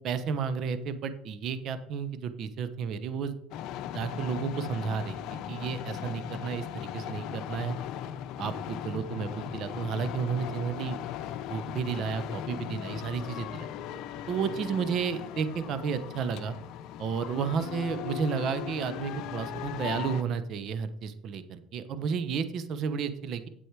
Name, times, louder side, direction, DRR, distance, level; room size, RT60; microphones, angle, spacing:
voice 1, 0.0-3.3 3.9-5.2 5.5-7.8 8.4-11.0 11.5-13.7 14.3-16.5 17.0-23.5, right 6 dB, 55° right, 12 dB, 0.9 m, -32 dB
sound 1, 3.5-20.2, left 10 dB, 65° left, 0.7 m, -38 dB
8.2 x 8.0 x 4.8 m, 0.69 s
supercardioid pair, 95°, 0 cm